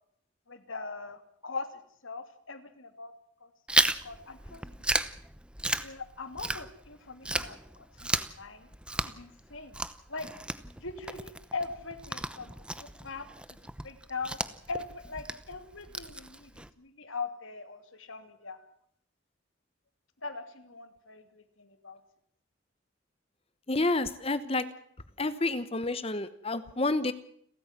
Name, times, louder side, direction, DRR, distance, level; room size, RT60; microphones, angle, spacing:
voice 1, 0.5-1.7 2.0-3.1 3.4-3.5 4.0-4.6 5.8-8.7 9.0-9.8 10.1-10.3 10.8-14.4 14.7-18.6 20.2-22.0, left 4 dB, 85° left, 8 dB, 2.9 m, -41 dB
Chewing mastication, 3.7-6.9 7.2-16.7, right 1 dB, 5° right, 0.8 m, -33 dB
voice 2, 23.7-24.7 25.2-27.1, left 2 dB, 30° left, 13 dB, 1.0 m, -29 dB
30.0 x 13.5 x 7.5 m, 0.66 s
head